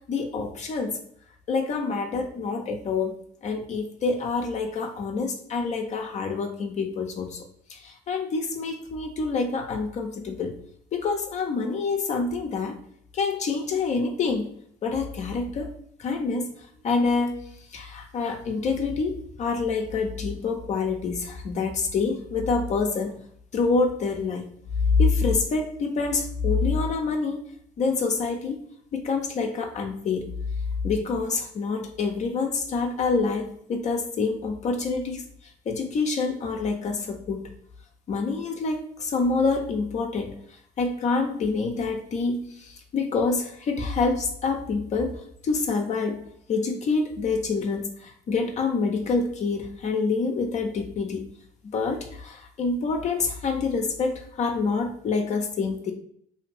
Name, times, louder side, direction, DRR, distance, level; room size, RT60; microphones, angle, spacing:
voice 1, 0.1-1.0 1.5-3.2 3.4-7.4 7.7-10.6 10.9-12.8 13.1-14.5 14.8-15.7 16.0-16.5 16.8-17.4 17.7-23.2 23.5-24.5 24.9-27.4 27.8-28.6 28.9-30.3 30.8-37.5 38.1-40.4 40.8-46.2 46.5-51.2 51.6-55.9, left 4 dB, 45° left, 3 dB, 0.5 m, -27 dB
2.7 x 2.4 x 3.3 m, 0.67 s
hypercardioid pair, 70°, 17 cm